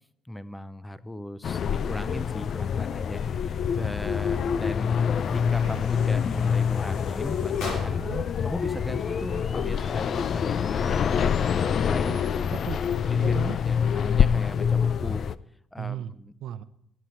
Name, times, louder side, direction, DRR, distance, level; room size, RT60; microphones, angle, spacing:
voice 1, 0.2-8.0 8.4-12.2 13.0-13.4 13.6-15.3 15.7-16.3, left 1 dB, 10° left, 15 dB, 0.6 m, -37 dB
sound 1, 1.4-15.3, left 7 dB, 55° left, 0.4 m, -26 dB
sound 2, 1.6-13.0, left 2 dB, 30° left, 4.6 m, -51 dB
sound 3, 5.2-8.3, left 2 dB, 85° left, 3.6 m, -40 dB
voice 2, 12.1-12.8 13.2-13.6 15.8-16.1 16.4-16.6, right 10 dB, 75° right, 13 dB, 0.7 m, -36 dB
17.5 x 7.9 x 4.4 m, 0.75 s
cardioid pair, 85°, 0 cm